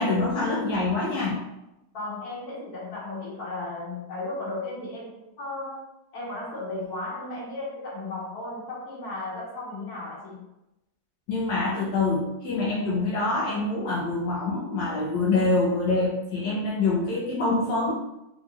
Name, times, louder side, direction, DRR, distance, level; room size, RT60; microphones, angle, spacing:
voice 1, 0.0-1.4 11.3-17.9, left 3 dB, 80° left, -5 dB, 1.5 m, -25 dB
voice 2, 1.9-5.8 6.1-10.5, left 2 dB, 55° left, -6 dB, 2.1 m, -35 dB
3.9 x 3.9 x 3.0 m, 0.91 s
omnidirectional pair, 2.0 m